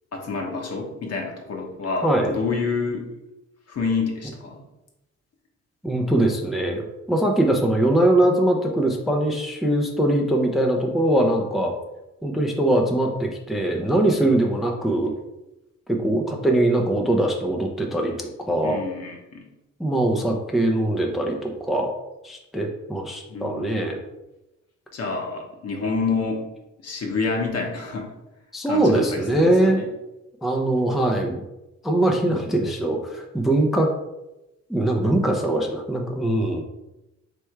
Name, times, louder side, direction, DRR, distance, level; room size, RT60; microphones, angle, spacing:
voice 1, 0.1-3.1 3.7-4.6 14.2-14.3 18.6-19.4 23.3-24.0 24.9-26.5 26.8-28.1 28.7-29.9, left 4 dB, 55° left, 1 dB, 1.1 m, -28 dB
voice 2, 5.8-6.8 7.1-11.7 12.2-15.1 15.9-18.8 19.8-21.9 22.2-24.0 28.5-29.8 30.4-31.4 31.8-33.9 34.7-36.6, right 1 dB, ahead, 1 dB, 0.5 m, -22 dB
3.4 x 3.3 x 4.5 m, 0.95 s
cardioid pair, 90°, 30 cm